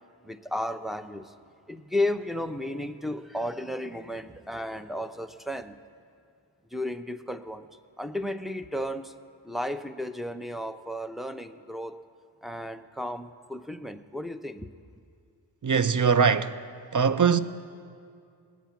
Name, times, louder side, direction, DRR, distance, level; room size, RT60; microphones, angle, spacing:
voice 1, 0.2-1.3 1.7-5.8 6.7-7.7 8.0-9.1 9.4-12.1 12.4-14.7, left 1 dB, ahead, 0.6 m, -33 dB
voice 2, 15.6-16.6 16.9-17.4, right 6 dB, 40° right, 0.6 m, -21 dB
19.5 x 8.3 x 5.9 m
cardioid pair, 45°, 46 cm